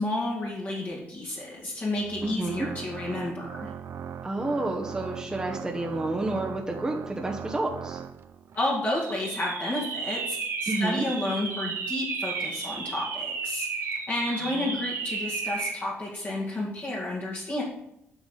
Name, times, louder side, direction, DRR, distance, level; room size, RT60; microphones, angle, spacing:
voice 1, 0.0-3.7 8.5-17.6, left 1 dB, 40° left, -4 dB, 2.1 m, -31 dB
Organ, 2.0-8.6, right 8 dB, 65° right, 0.5 m, -40 dB
voice 2, 2.2-2.7 4.2-8.0 10.7-11.0 14.5-14.8, right 2 dB, 15° right, 0 dB, 1.0 m, -30 dB
sound 1, 8.9-15.8, right 5 dB, 85° right, 1.9 m, -33 dB
9.0 x 5.9 x 3.9 m, 0.81 s
cardioid pair, 120°, 5 cm